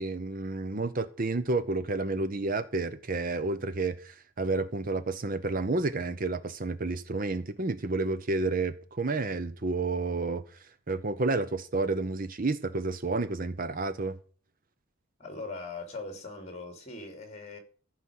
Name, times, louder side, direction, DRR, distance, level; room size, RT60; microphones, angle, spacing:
voice 1, 0.0-14.2, right 3 dB, 40° right, 0.7 m, -30 dB
voice 2, 15.2-17.6, left 3 dB, 30° left, 3.3 m, -40 dB
15.0 x 5.0 x 8.6 m
head